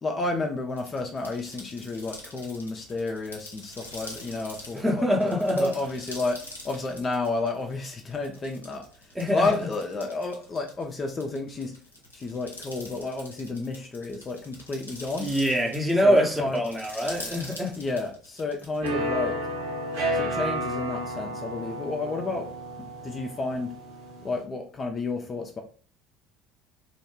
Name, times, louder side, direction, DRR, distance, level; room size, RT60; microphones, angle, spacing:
voice 1, 0.0-5.3 5.6-6.4 6.6-8.9 9.3-11.7 12.1-15.3 16.0-16.6 17.8-19.4 20.1-22.5 23.0-23.7 24.2-25.6, left 3 dB, 30° left, 0.3 m, -31 dB
sound 1, 0.7-18.9, left 1 dB, 90° left, 0.5 m, -44 dB
voice 2, 4.7-5.8 9.1-9.5 15.2-17.8, equal, 10° right, 0.6 m, -24 dB
sound 2, 18.8-24.4, right 1 dB, 65° right, 0.9 m, -31 dB
2.2 x 2.1 x 3.0 m
figure-of-eight pair, 65°, 0 cm